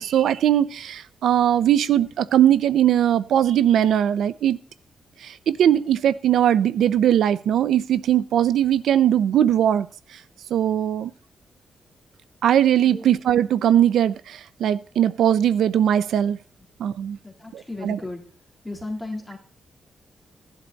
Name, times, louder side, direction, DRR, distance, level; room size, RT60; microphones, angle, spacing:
voice 1, 0.0-4.6 5.2-9.9 10.5-11.1 12.4-16.4 16.8-17.2 17.5-18.0, right 10 dB, 80° right, 17 dB, 0.7 m, -20 dB
voice 2, 17.2-18.2 18.6-19.4, left 2 dB, 5° left, 0 dB, 3.3 m, -34 dB
17.0 x 11.5 x 4.1 m, 0.40 s
wide cardioid pair, 170°, 0 cm